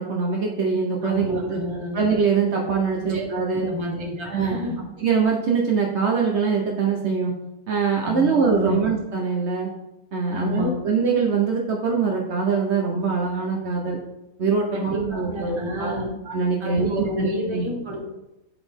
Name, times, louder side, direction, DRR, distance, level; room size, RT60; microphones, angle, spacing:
voice 1, 0.0-1.6 1.9-3.7 4.2-4.6 5.0-7.3 7.7-9.7 10.1-14.0 14.4-15.9 16.3-17.7, right 5 dB, 60° right, -1 dB, 1.0 m, -23 dB
voice 2, 1.0-2.0 3.0-4.8 8.0-8.8 10.3-10.9 14.7-16.1 16.6-18.1, left 1 dB, 25° right, -1 dB, 1.1 m, -30 dB
7.9 x 3.9 x 3.5 m, 0.94 s
omnidirectional pair, 1.4 m